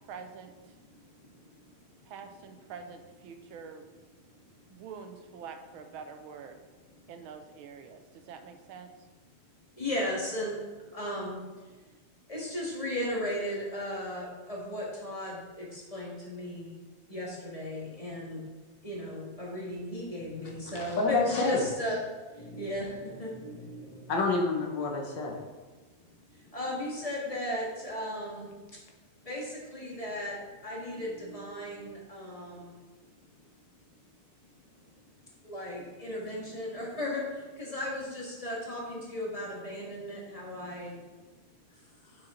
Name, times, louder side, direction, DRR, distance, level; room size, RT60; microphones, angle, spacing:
voice 1, 0.1-0.8 2.0-3.9 4.7-6.6 7.1-8.9, right 6 dB, 80° right, 7 dB, 1.4 m, -46 dB
voice 2, 0.9-1.7 2.0-2.1 9.8-11.4 12.3-16.8 17.1-18.4 18.8-22.0 22.3-24.1 26.3-28.5 29.2-32.8 35.4-41.0, left 1 dB, 20° left, -3 dB, 1.5 m, -36 dB
voice 3, 20.8-21.6 24.1-25.4, left 3 dB, 65° left, 0 dB, 1.7 m, -28 dB
6.4 x 6.2 x 4.3 m, 1.3 s
omnidirectional pair, 2.3 m